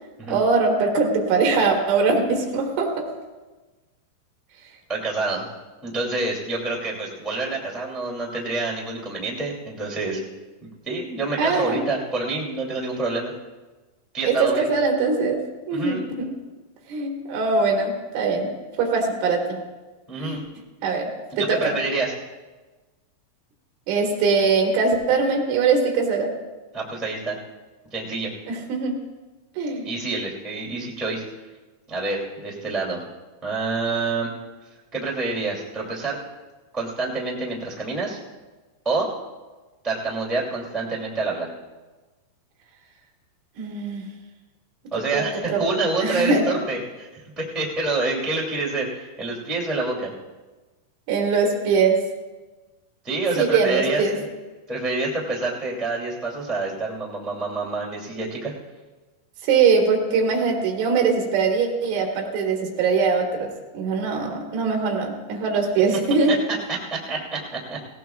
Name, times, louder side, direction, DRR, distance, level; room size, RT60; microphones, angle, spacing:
voice 1, 0.3-3.1 11.4-11.9 14.2-16.4 16.9-19.6 20.2-20.4 20.8-21.7 23.9-26.3 28.5-29.0 29.6-29.9 43.6-44.1 45.0-45.6 46.0-46.5 51.1-52.0 53.4-54.2 59.4-66.4, right 4 dB, 85° right, 1 dB, 4.1 m, -22 dB
voice 2, 4.9-5.4 5.8-10.2 10.8-13.3 14.1-14.7 15.7-16.0 20.1-20.4 21.3-22.1 26.7-27.4 27.9-28.3 29.8-31.2 31.9-33.0 33.4-34.3 34.9-36.2 36.7-38.2 38.8-39.1 39.8-41.5 44.9-50.1 53.0-54.2 54.7-58.5 66.5-67.8, right 3 dB, ahead, -3 dB, 0.5 m, -27 dB
18.5 x 18.0 x 2.3 m, 1.2 s
omnidirectional pair, 5.4 m